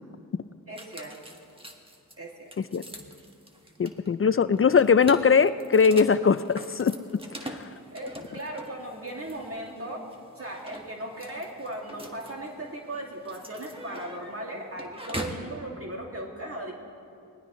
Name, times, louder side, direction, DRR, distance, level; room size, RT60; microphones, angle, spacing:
voice 1, 0.7-1.2 2.2-2.5 7.9-10.0 10.3-16.7, right 1 dB, 40° right, -2 dB, 2.3 m, -37 dB
sound 1, 0.8-15.5, equal, 15° right, 1.5 m, -43 dB
voice 2, 3.8-6.9 7.4-7.7, left 6 dB, 40° left, 13 dB, 0.4 m, -21 dB
24.5 x 19.0 x 3.1 m, 2.4 s
cardioid pair, 60°, 33 cm